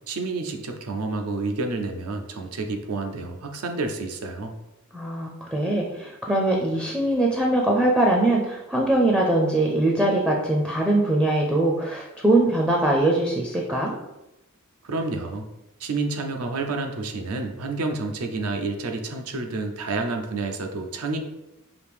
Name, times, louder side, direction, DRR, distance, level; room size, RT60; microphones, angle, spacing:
voice 1, 0.1-4.5 14.8-15.5 15.8-21.2, right 3 dB, 80° right, 4 dB, 0.6 m, -29 dB
voice 2, 4.9-13.9, right 1 dB, 5° right, -1 dB, 0.4 m, -22 dB
5.0 x 2.7 x 3.4 m, 0.96 s
head